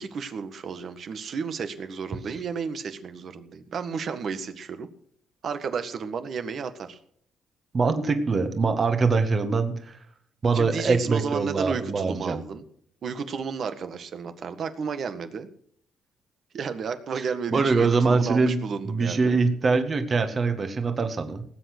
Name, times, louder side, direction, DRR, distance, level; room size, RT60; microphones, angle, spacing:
voice 1, 0.0-4.9 5.4-7.0 10.5-12.6 13.0-15.5 16.5-19.4, right 6 dB, 55° right, 9 dB, 1.7 m, -32 dB
voice 2, 7.7-10.0 10.4-12.4 17.5-18.6 18.9-21.4, right 4 dB, 40° right, 7 dB, 1.8 m, -23 dB
18.5 x 8.4 x 6.2 m, 0.62 s
cardioid pair, 90°, 0 cm